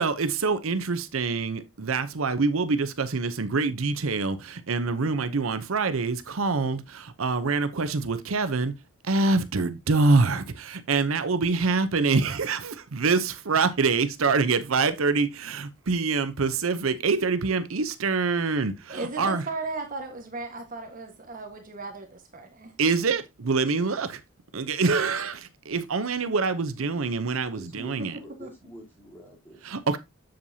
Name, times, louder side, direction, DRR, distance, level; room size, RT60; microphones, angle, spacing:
voice 1, 0.0-8.7 9.0-19.4 22.8-24.2 24.5-28.2 29.6-30.0, right 4 dB, 85° right, 0.7 m, -25 dB
voice 2, 18.9-22.7 28.4-28.5, right 3 dB, 40° right, 1.4 m, -36 dB
voice 3, 27.5-29.6, right 1 dB, 10° left, 3.3 m, -45 dB
7.7 x 7.1 x 2.7 m
head